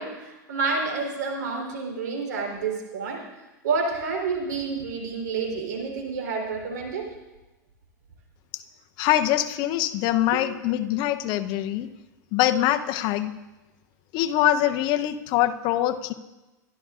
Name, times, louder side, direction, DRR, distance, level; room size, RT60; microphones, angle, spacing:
voice 1, 0.0-3.2 3.6-7.1 10.3-10.4, right 4 dB, 80° right, 1 dB, 3.7 m, -29 dB
voice 2, 9.0-11.9 12.3-13.3 14.1-16.1, left 13 dB, 50° left, 9 dB, 0.8 m, -23 dB
24.5 x 12.0 x 2.5 m, 1.1 s
hypercardioid pair, 110°, 10 cm